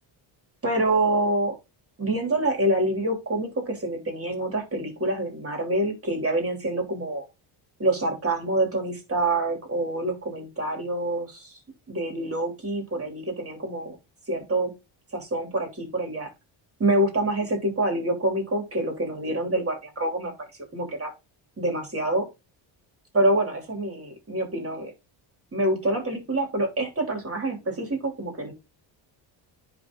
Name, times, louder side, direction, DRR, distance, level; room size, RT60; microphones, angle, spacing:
voice 1, 0.6-1.5 2.0-7.2 7.8-11.6 11.9-13.9 14.3-14.7 15.1-16.3 16.8-20.3 20.7-21.1 21.6-22.3 23.1-24.9 25.5-28.5, right 1 dB, 30° right, 3 dB, 3.2 m, -26 dB
10.0 x 3.9 x 3.8 m, 0.25 s
cardioid pair, 130°, 46 cm